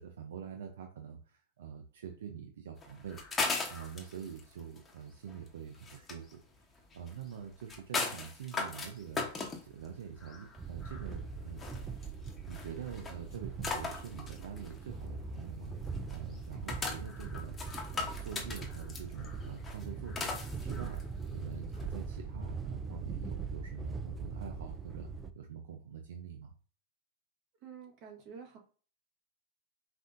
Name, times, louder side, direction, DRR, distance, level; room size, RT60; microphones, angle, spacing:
voice 1, 0.0-3.2 3.7-6.4 6.9-9.2 9.6-11.6 12.5-15.7 16.1-17.7 17.9-20.4 20.6-21.0 21.3-26.5, right 7 dB, 80° right, 5 dB, 0.5 m, -45 dB
sound 1, 2.8-22.0, left 4 dB, 20° left, 1.0 m, -40 dB
sound 2, 10.6-25.3, right 4 dB, 15° right, 0.4 m, -41 dB
voice 2, 27.6-28.6, right 6 dB, 45° right, 1 dB, 1.3 m, -49 dB
5.5 x 2.6 x 2.6 m, 0.42 s
hypercardioid pair, 125°, 0 cm